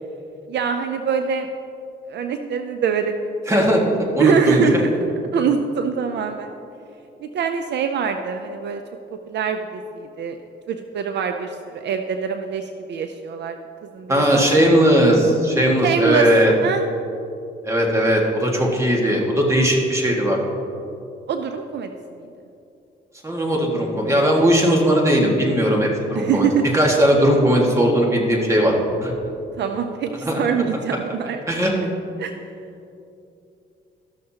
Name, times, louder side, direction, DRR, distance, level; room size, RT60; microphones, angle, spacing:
voice 1, 0.5-1.5 2.1-3.4 4.2-4.9 5.3-6.5 7.2-8.8 9.1-10.4 10.7-13.6 13.9-14.5 15.8-16.3 16.6-16.8 21.3-21.9 22.2-22.3 26.1-26.8 29.6-31.4 32.2-32.4, right 6 dB, 60° right, 6 dB, 0.5 m, -24 dB
voice 2, 3.5-3.8 4.1-4.7 14.1-16.5 17.6-20.4 23.2-26.5 26.7-28.7 29.0-29.1 30.2-30.4 31.5-31.7, equal, 15° right, -2 dB, 1.8 m, -18 dB
13.5 x 6.6 x 2.9 m, 2.7 s
cardioid pair, 90°, 20 cm